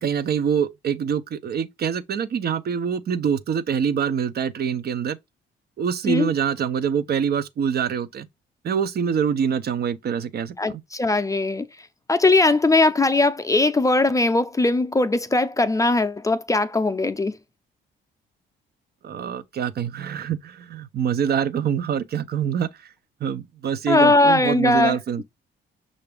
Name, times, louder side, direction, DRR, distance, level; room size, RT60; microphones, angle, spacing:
voice 1, 0.0-5.2 5.8-8.3 8.6-10.8 19.0-22.9 23.2-25.2, right 7 dB, 55° right, 0.6 m, -25 dB
voice 2, 10.6-11.7 12.1-17.4 23.9-25.0, left 2 dB, 15° left, 0.5 m, -19 dB
5.8 x 2.6 x 3.4 m
cardioid pair, 90°, 20 cm